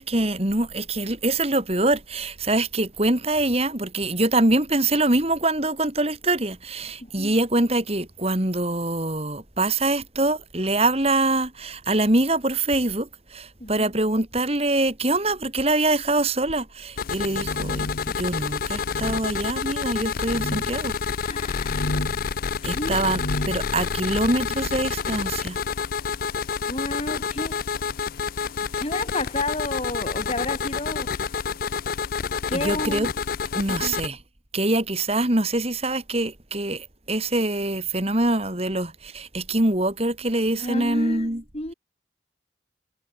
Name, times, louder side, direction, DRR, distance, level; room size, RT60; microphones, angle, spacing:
voice 1, 0.0-20.9 22.6-25.6 32.5-33.1 33.5-34.2 34.5-41.4, right 2 dB, 35° right, 2.6 m, -24 dB
voice 2, 7.0-7.4 13.6-13.9 21.2-22.2 22.6-23.8 26.6-27.6 28.7-31.5 32.5-33.1 33.7-34.0 40.5-41.3 41.5-41.7, left 2 dB, 30° left, 2.9 m, -32 dB
sound 1, 17.0-34.1, left 6 dB, 50° left, 0.4 m, -29 dB
sound 2, 17.2-18.2 18.9-19.2 20.2-20.7 21.5-22.3 22.9-23.6, left 1 dB, 70° left, 2.0 m, -32 dB
head